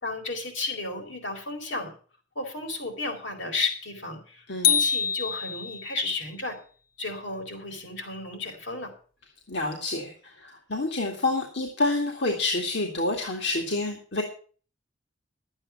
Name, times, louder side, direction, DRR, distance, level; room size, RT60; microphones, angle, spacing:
voice 1, 0.0-1.9 2.3-6.6 7.0-8.9, left 3 dB, 85° left, 2 dB, 4.4 m, -33 dB
voice 2, 4.5-4.8 9.5-14.2, left 2 dB, 70° left, 1 dB, 2.2 m, -28 dB
sound 1, 4.6-6.0, left 8 dB, 50° left, 1.9 m, -25 dB
12.0 x 8.8 x 7.2 m, 0.41 s
head